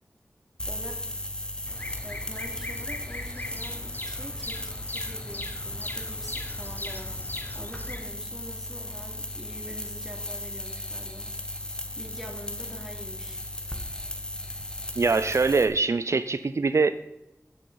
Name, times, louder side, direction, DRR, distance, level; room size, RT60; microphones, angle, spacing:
sound 1, 0.6-15.6, left 1 dB, 15° left, 1.5 m, -36 dB
Bird vocalization bird call bird song, 1.7-8.0, left 2 dB, 35° left, 1.2 m, -39 dB
voice 1, 2.0-11.3 11.7-13.4, equal, 5° right, 1 dB, 2.9 m, -45 dB
voice 2, 15.0-16.9, right 4 dB, 65° right, 12 dB, 0.4 m, -23 dB
16.5 x 6.4 x 5.7 m, 0.86 s
wide cardioid pair, 65°, 5 cm